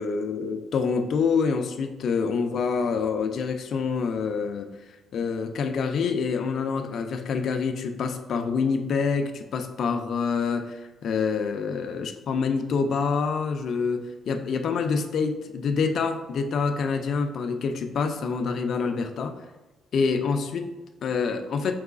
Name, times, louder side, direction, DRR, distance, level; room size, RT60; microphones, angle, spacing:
voice 1, 0.0-4.7 5.1-19.3 19.9-21.7, left 5 dB, 65° left, 6 dB, 0.3 m, -26 dB
4.7 x 2.9 x 2.4 m, 1.1 s
cardioid pair, 90°, 0 cm